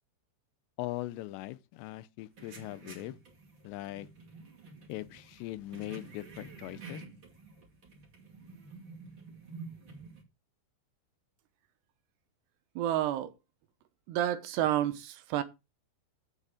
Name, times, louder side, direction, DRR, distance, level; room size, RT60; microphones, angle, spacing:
voice 1, 0.8-3.2 3.6-4.1 4.9-7.0, left 17 dB, 85° left, 2.9 m, -40 dB
sound 1, 2.3-10.2, right 4 dB, 35° right, 2.3 m, -50 dB
voice 2, 12.8-13.3 14.1-15.4, right 12 dB, 80° right, 2.8 m, -30 dB
8.2 x 6.9 x 4.9 m
omnidirectional pair, 5.0 m